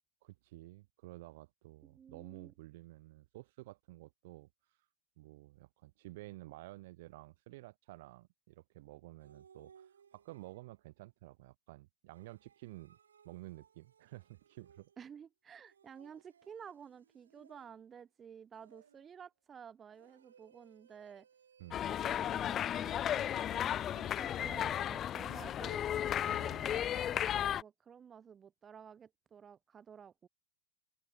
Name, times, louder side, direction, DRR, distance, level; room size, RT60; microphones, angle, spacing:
voice 1, 0.2-4.5 5.2-13.0 13.2-14.9 21.6-21.9 26.2-26.8, right 19 dB, 50° right, 3.2 m, -52 dB
voice 2, 1.8-2.5 15.0-21.3 21.8-25.9 26.7-30.3, right 7 dB, 20° right, 3.8 m, -53 dB
sound 1, 9.2-10.9 12.1-15.2 15.7-18.0 18.5-19.2 19.9-22.7 23.1-26.7, right 7 dB, 70° right, 6.5 m, -66 dB
sound 2, 21.7-27.6, left 10 dB, 30° left, 1.4 m, -34 dB
open air
figure-of-eight pair, 90°, 0 cm